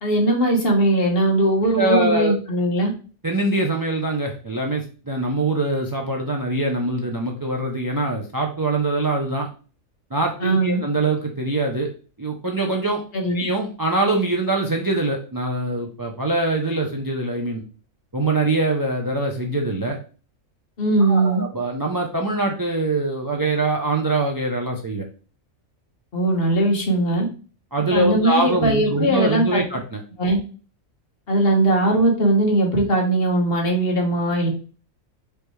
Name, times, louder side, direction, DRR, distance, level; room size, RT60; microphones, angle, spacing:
voice 1, 0.0-2.9 10.4-10.8 13.1-13.4 20.8-21.4 26.1-27.3 27.9-29.6 30.2-30.4 31.3-34.5, right 1 dB, 50° left, 0 dB, 1.3 m, -19 dB
voice 2, 1.7-2.3 3.2-9.5 10.1-11.9 12.2-13.0 13.3-17.6 18.1-20.0 21.0-25.0 27.7-30.0, right 2 dB, 35° right, 1 dB, 0.3 m, -23 dB
5.1 x 3.3 x 3.1 m, 0.37 s
omnidirectional pair, 1.4 m